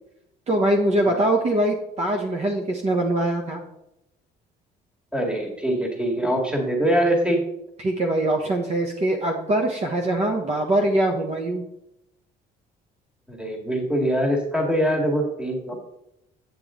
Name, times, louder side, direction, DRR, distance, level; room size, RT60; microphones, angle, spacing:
voice 1, 0.5-3.6 7.8-11.6, right 1 dB, 40° right, 1 dB, 1.2 m, -23 dB
voice 2, 5.1-7.4 13.3-15.7, equal, 5° right, 1 dB, 2.0 m, -23 dB
8.8 x 7.6 x 3.8 m, 0.83 s
cardioid pair, 110°, 17 cm